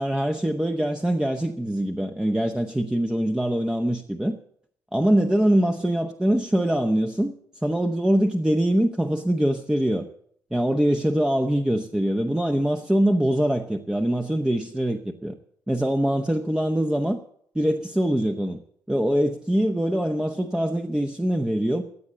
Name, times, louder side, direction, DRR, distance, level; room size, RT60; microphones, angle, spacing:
voice 1, 0.0-4.4 4.9-7.3 7.6-10.1 10.5-15.4 15.7-17.2 17.5-18.6 18.9-21.8, right 1 dB, 5° right, 4 dB, 1.0 m, -23 dB
15.0 x 8.5 x 7.9 m, 0.65 s
figure-of-eight pair, 45°, 10 cm